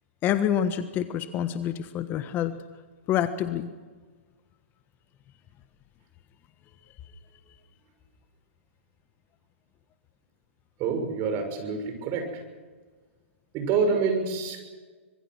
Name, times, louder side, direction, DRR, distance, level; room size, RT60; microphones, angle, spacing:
voice 1, 0.2-2.5 3.1-3.7, left 10 dB, 30° left, 11 dB, 1.4 m, -27 dB
voice 2, 10.8-12.4 13.5-14.6, right 5 dB, 35° right, 6 dB, 6.2 m, -27 dB
25.5 x 22.0 x 6.3 m, 1.4 s
hypercardioid pair, 115°, 7 cm